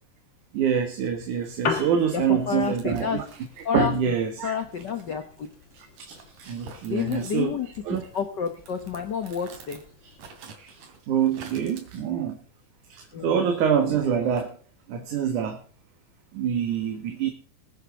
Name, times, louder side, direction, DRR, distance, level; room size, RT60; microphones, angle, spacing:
voice 1, 0.5-3.2 3.7-4.5 5.7-7.5 7.8-8.1 10.0-10.1 10.6-10.8 11.1-12.4 12.9-14.6 14.9-15.6 16.3-17.3, right 8 dB, 70° right, 2.9 m, -26 dB
Piano, 1.4-10.4, left 5 dB, 40° left, 2.5 m, -39 dB
voice 2, 2.1-3.2 3.6-3.9 4.4-5.5 6.9-7.7 8.1-9.8 13.1-13.5, left 7 dB, 85° left, 0.9 m, -29 dB
sound 1, 2.5-4.1 4.7-7.4 7.7-9.8 10.1-11.8, right 5 dB, 85° right, 4.0 m, -47 dB
21.0 x 8.3 x 3.8 m
omnidirectional pair, 3.8 m